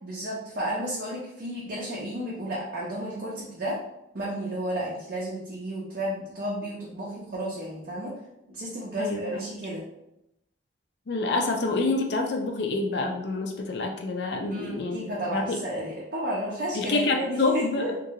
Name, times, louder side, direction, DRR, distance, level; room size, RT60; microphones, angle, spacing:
voice 1, 0.0-3.8 4.1-8.1 8.5-9.8 14.5-17.9, right 1 dB, 50° right, -6 dB, 0.6 m, -32 dB
voice 2, 9.0-9.4 11.1-15.0 15.3-15.6 16.7-17.9, left 3 dB, 60° left, 3 dB, 0.4 m, -27 dB
2.9 x 2.6 x 2.7 m, 0.85 s
head